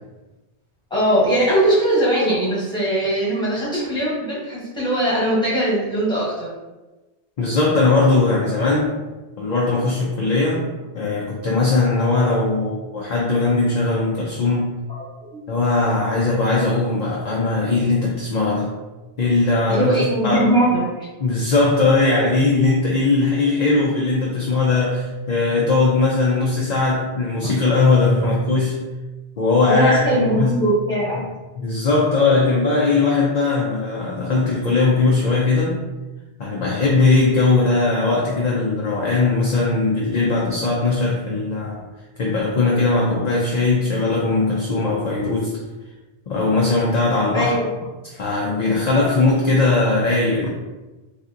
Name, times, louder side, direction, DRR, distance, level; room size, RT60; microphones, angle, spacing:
voice 1, 0.9-6.5 14.9-15.0 15.3-15.4 19.7-20.9 29.7-31.2 47.3-47.7, right 1 dB, 5° left, -8 dB, 1.1 m, -20 dB
voice 2, 7.4-8.9 9.4-10.6 10.9-14.7 15.5-18.7 19.2-19.9 20.2-20.4 21.2-28.8 29.4-30.6 31.1-31.3 31.6-35.8 36.4-41.8 42.2-45.6 46.3-47.6 48.1-50.5, left 3 dB, 50° left, -4 dB, 0.5 m, -19 dB
3.3 x 2.6 x 2.5 m, 1.1 s
omnidirectional pair, 1.1 m